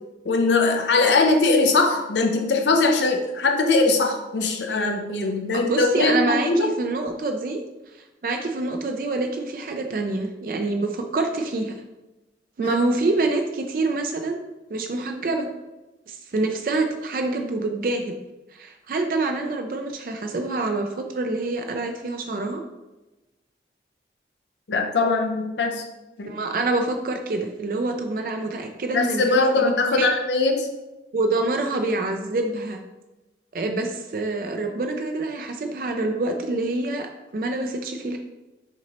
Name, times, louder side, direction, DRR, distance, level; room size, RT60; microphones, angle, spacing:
voice 1, 0.2-6.7 12.6-12.8 24.7-25.8 26.2-26.4 28.9-30.7, left 3 dB, 85° left, 4 dB, 0.6 m, -21 dB
voice 2, 5.6-7.6 8.2-11.7 12.6-14.4 14.7-15.5 16.1-18.2 18.5-22.6 26.3-30.1 31.1-32.8 33.5-38.2, right 2 dB, 50° right, 5 dB, 0.4 m, -26 dB
5.8 x 2.9 x 2.9 m, 1.0 s
head